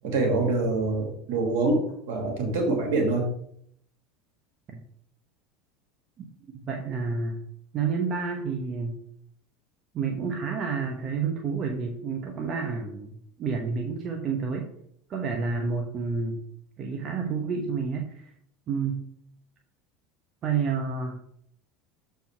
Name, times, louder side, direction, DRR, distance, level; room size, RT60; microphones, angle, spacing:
voice 1, 0.0-3.3, right 2 dB, 75° right, 1 dB, 2.5 m, -25 dB
voice 2, 6.5-7.4 7.7-9.0 9.9-14.7 15.1-16.4 16.8-18.3 18.7-19.1 20.4-21.2, right 5 dB, 45° right, 2 dB, 1.1 m, -29 dB
7.0 x 4.7 x 4.6 m, 0.68 s
hypercardioid pair, 95°, 0 cm